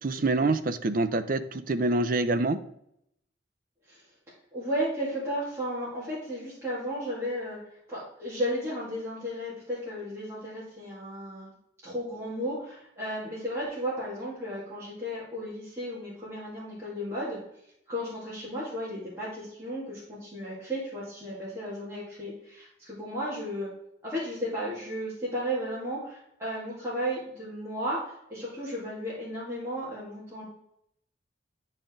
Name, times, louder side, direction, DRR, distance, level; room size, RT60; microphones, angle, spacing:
voice 1, 0.0-2.6, right 2 dB, 45° right, 10 dB, 0.5 m, -26 dB
voice 2, 4.5-7.6 7.9-11.5 11.8-17.4 17.9-23.7 24.0-30.4, equal, 15° right, -10 dB, 2.6 m, -34 dB
10.5 x 4.2 x 3.8 m, 0.75 s
head